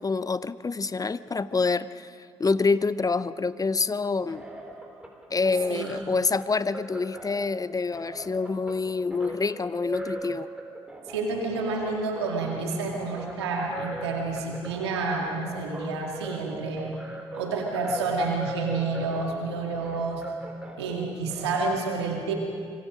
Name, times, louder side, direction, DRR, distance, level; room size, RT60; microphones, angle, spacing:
voice 1, 0.0-4.4 5.3-10.5, left 4 dB, 25° left, 17 dB, 0.7 m, -27 dB
sound 1, 4.0-21.8, right 1 dB, 5° right, 4.2 m, -40 dB
voice 2, 11.1-16.9 17.3-20.2 20.8-22.3, right 3 dB, 85° right, 0 dB, 2.4 m, -29 dB
26.0 x 21.5 x 5.2 m, 2.3 s
hypercardioid pair, 45°, 13 cm